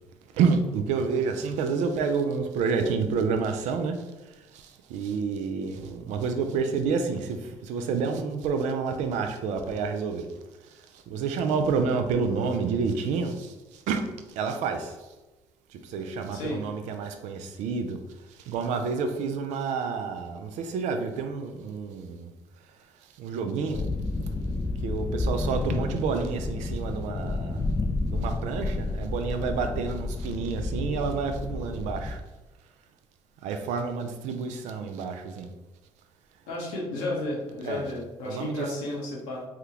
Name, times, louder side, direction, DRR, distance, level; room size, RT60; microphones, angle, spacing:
voice 1, 0.3-4.0 4.5-10.3 11.1-14.0 14.4-15.0 15.7-18.0 18.4-22.3 23.2-23.8 24.8-27.6 28.0-32.2 33.4-35.5 37.6-37.8 38.2-38.7, right 5 dB, 70° right, 6 dB, 0.4 m, -29 dB
voice 2, 16.3-16.6 36.5-39.4, left 2 dB, 80° left, -3 dB, 1.0 m, -33 dB
sound 1, 23.7-32.1, left 2 dB, 25° left, 0.4 m, -30 dB
3.4 x 2.3 x 2.9 m, 1.1 s
hypercardioid pair, 65°, 13 cm